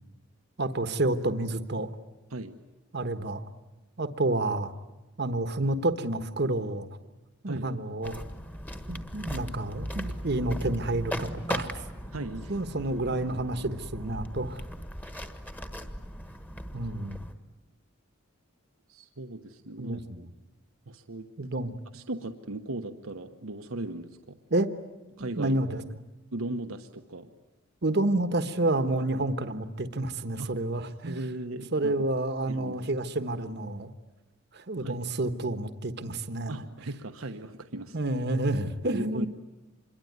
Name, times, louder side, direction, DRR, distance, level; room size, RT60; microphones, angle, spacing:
voice 1, 0.6-1.9 2.9-3.4 4.0-4.7 5.2-6.9 7.4-8.2 8.9-11.7 12.5-14.6 16.7-17.2 19.8-20.2 21.4-21.7 24.5-24.7 25.2-25.8 27.8-31.2 31.7-33.9 34.5-36.6 37.9-39.3, right 2 dB, 55° right, 11 dB, 1.2 m, -29 dB
sound 1, 8.0-17.3, equal, 10° left, 1.5 m, -38 dB
voice 2, 12.1-12.5 18.9-20.3 20.9-21.3 21.9-24.4 25.2-25.6 26.3-27.3 30.4-30.5 31.1-32.1 32.5-32.8 34.8-35.1 36.5-38.0 38.9-39.3, right 2 dB, 85° right, 7 dB, 1.2 m, -37 dB
26.5 x 23.0 x 9.6 m, 1.0 s
head